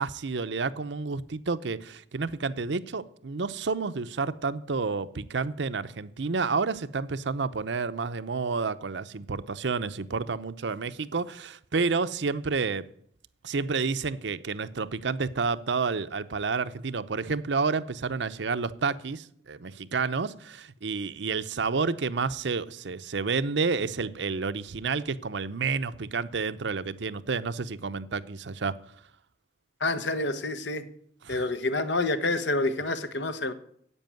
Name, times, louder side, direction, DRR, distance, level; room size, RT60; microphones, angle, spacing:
voice 1, 0.0-12.9 13.4-28.8 31.2-31.4, right 4 dB, 75° right, 0.7 m, -30 dB
voice 2, 29.8-30.8 31.3-33.5, left 2 dB, 75° left, 1.2 m, -28 dB
11.0 x 8.5 x 9.1 m
head